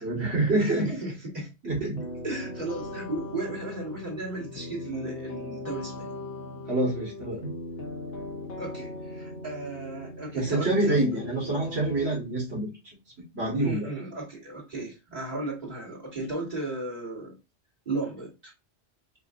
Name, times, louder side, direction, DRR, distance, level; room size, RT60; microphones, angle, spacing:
voice 1, 0.0-1.0 1.6-2.0 6.7-7.5 10.3-12.7 13.3-13.9, right 2 dB, 65° right, 1.7 m, -26 dB
voice 2, 0.6-1.5 1.8-1.9 2.2-6.1 8.6-11.0 13.6-17.4 17.9-18.5, right 2 dB, 40° right, 2.3 m, -35 dB
sound 1, 1.9-12.2, left 2 dB, 85° left, 1.3 m, -39 dB
5.6 x 2.6 x 2.5 m
omnidirectional pair, 1.1 m